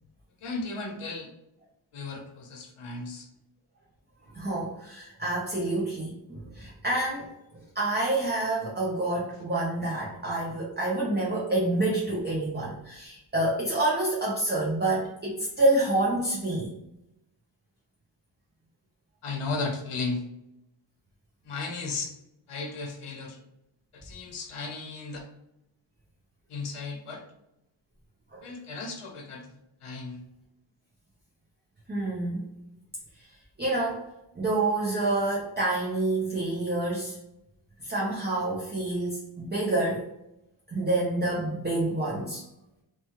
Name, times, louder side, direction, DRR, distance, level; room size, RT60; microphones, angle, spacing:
voice 1, 0.4-1.3 1.9-3.3 19.2-20.2 21.4-22.1 22.5-23.4 23.9-25.3 26.5-27.2 28.4-29.5 29.8-30.2, left 3 dB, 85° left, 2 dB, 0.9 m, -35 dB
voice 2, 4.3-7.3 7.7-16.7 28.3-28.4 31.9-32.5 33.6-34.0 34.4-37.2 37.8-40.1 40.7-42.4, right 2 dB, 20° right, -4 dB, 0.5 m, -28 dB
2.9 x 2.2 x 2.8 m, 0.86 s
wide cardioid pair, 150°, 49 cm